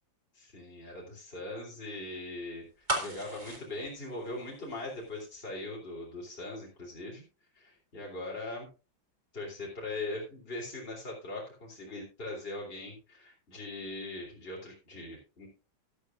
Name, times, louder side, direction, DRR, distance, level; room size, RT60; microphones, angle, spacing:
voice 1, 0.3-7.2 7.6-8.7 9.3-15.5, left 2 dB, 30° left, -3 dB, 3.5 m, -40 dB
sound 1, 2.9-4.9 5.2-5.3, right 1 dB, 25° right, 2.1 m, -35 dB
13.5 x 11.5 x 2.5 m, 0.31 s
omnidirectional pair, 2.0 m